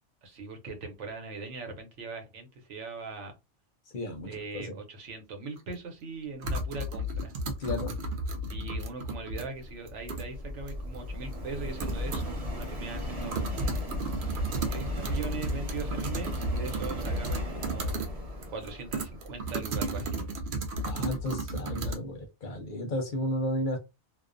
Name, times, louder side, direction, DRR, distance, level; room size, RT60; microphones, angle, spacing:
voice 1, 0.2-3.3 4.2-7.3 8.5-13.8 14.7-18.0 18.5-20.2, right 3 dB, 90° right, 1.1 m, -40 dB
voice 2, 3.9-4.8 7.4-7.9 20.8-23.8, left 1 dB, 55° left, 0.7 m, -33 dB
sound 1, 5.6-5.7 6.4-9.4 9.9-10.3 10.7-10.8 11.3-11.4 11.8-12.4 12.6-12.7 13.0-18.1 18.4-21.9, right 2 dB, 60° right, 0.6 m, -33 dB
Subway metro underground, 8.6-19.9, left 1 dB, 35° right, 0.9 m, -37 dB
2.4 x 2.1 x 2.4 m
omnidirectional pair, 1.2 m